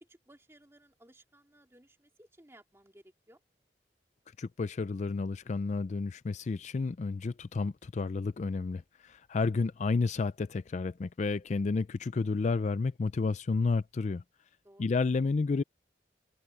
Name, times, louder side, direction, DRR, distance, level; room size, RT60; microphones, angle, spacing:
voice 1, 0.0-3.4 14.6-14.9, right 1 dB, 15° right, 2.1 m, -59 dB
voice 2, 4.4-14.2 14.8-15.6, left 4 dB, 40° left, 0.4 m, -31 dB
open air
head